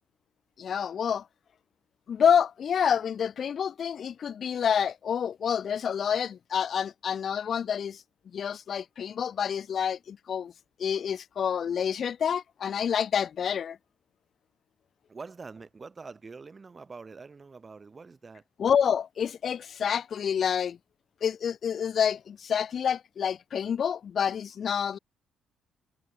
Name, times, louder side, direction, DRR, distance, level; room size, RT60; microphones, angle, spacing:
voice 1, 0.6-1.2 2.1-8.0 8.3-10.5 10.8-13.8 18.6-20.8 21.2-25.0, left 8 dB, 50° left, 0.3 m, -28 dB
voice 2, 15.1-18.4, right 4 dB, 30° right, 4.9 m, -45 dB
cardioid pair, 105°, 0 cm